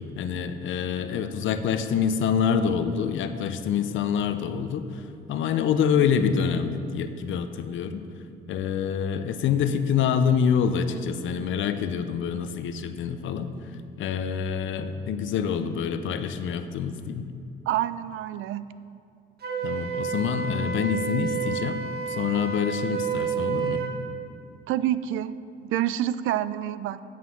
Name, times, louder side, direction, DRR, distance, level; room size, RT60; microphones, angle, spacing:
voice 1, 0.0-5.0 5.3-8.1 8.5-13.5 14.0-17.3 19.6-21.8 22.1-23.8, left 7 dB, 75° left, 10 dB, 0.7 m, -26 dB
voice 2, 17.7-18.7 24.7-25.4 25.6-27.0, right 12 dB, 80° right, 15 dB, 0.4 m, -27 dB
Wind instrument woodwind instrument, 19.4-24.0, right 7 dB, 55° right, 1.4 m, -30 dB
8.6 x 7.4 x 5.8 m, 2.5 s
cardioid pair, 90°, 20 cm